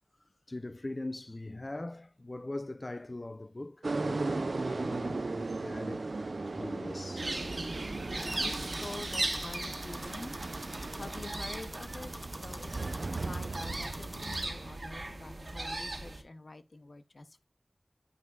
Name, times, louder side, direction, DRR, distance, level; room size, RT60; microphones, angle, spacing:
voice 1, 0.5-6.0 6.5-7.3 8.0-8.1, left 2 dB, 45° left, 0.4 m, -41 dB
sound 1, 3.8-14.8, right 3 dB, 90° right, 0.4 m, -37 dB
sound 2, 7.2-16.2, right 2 dB, 70° right, 1.9 m, -38 dB
voice 2, 8.1-10.3 10.9-12.1 12.4-12.7 13.1-17.5, left 2 dB, 80° left, 0.6 m, -47 dB
sound 3, 8.2-14.5, right 1 dB, 15° right, 0.6 m, -46 dB
9.5 x 5.4 x 2.3 m
wide cardioid pair, 60°, 0 cm